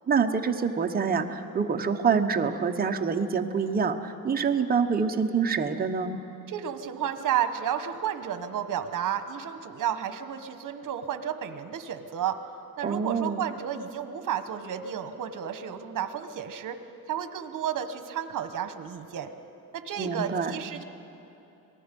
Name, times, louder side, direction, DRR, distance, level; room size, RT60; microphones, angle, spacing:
voice 1, 0.1-6.2 12.8-13.4 20.0-20.5, right 5 dB, 25° right, 4 dB, 1.0 m, -26 dB
voice 2, 6.5-12.4 12.8-16.8 17.1-19.3 19.7-20.8, right 9 dB, 60° right, 9 dB, 1.3 m, -32 dB
26.5 x 19.0 x 5.4 m, 3.0 s
cardioid pair, 125°, 36 cm